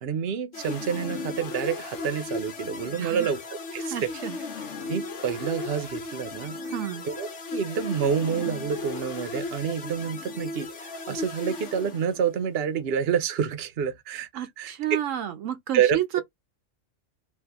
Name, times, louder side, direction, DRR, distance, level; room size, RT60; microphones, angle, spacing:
voice 1, 0.0-3.4 3.7-4.1 4.9-6.6 7.0-15.0 15.7-16.0, right 7 dB, 60° right, 0.9 m, -28 dB
sound 1, 0.5-12.4, left 3 dB, 70° left, 1.1 m, -36 dB
voice 2, 3.8-4.4 6.6-7.1 14.3-16.2, right 11 dB, 85° right, 1.0 m, -31 dB
2.6 x 2.6 x 3.4 m
omnidirectional pair, 1.3 m